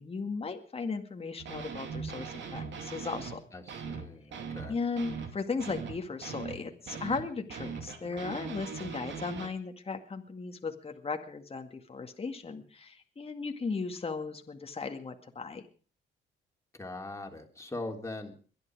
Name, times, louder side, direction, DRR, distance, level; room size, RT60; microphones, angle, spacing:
voice 1, 0.0-3.4 4.7-15.6, left 4 dB, 30° left, 5 dB, 2.1 m, -36 dB
sound 1, 1.4-3.4 3.7-9.5, right 5 dB, 70° right, 2.6 m, -40 dB
voice 2, 3.5-4.8 16.7-18.4, left 2 dB, 15° left, 3 dB, 3.4 m, -41 dB
22.5 x 11.0 x 4.8 m, 0.40 s
cardioid pair, 90°, 20 cm